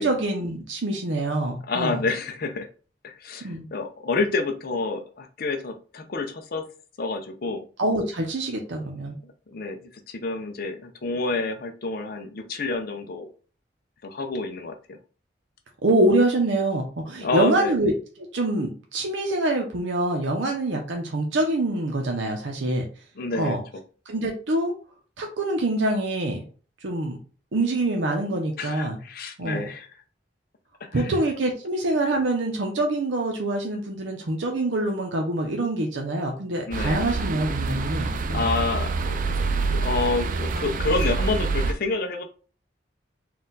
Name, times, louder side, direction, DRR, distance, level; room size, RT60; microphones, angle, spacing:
voice 1, 0.0-2.0 3.4-3.7 7.8-9.2 15.8-17.9 18.2-22.8 23.3-23.6 24.1-24.7 25.2-26.4 26.8-27.2 27.5-29.0 29.4-29.6 30.9-38.5, right 2 dB, 90° right, 1 dB, 0.7 m, -25 dB
voice 2, 1.7-2.7 3.0-6.7 7.0-7.6 9.2-13.3 14.0-15.0 17.2-17.7 23.2-23.6 28.6-29.9 30.8-31.2 36.7-37.0 38.3-39.2 39.7-42.2, left 3 dB, 55° left, 5 dB, 0.6 m, -29 dB
sound 1, 36.7-41.7, right 3 dB, 45° right, 0.4 m, -26 dB
4.3 x 2.4 x 3.8 m, 0.38 s
head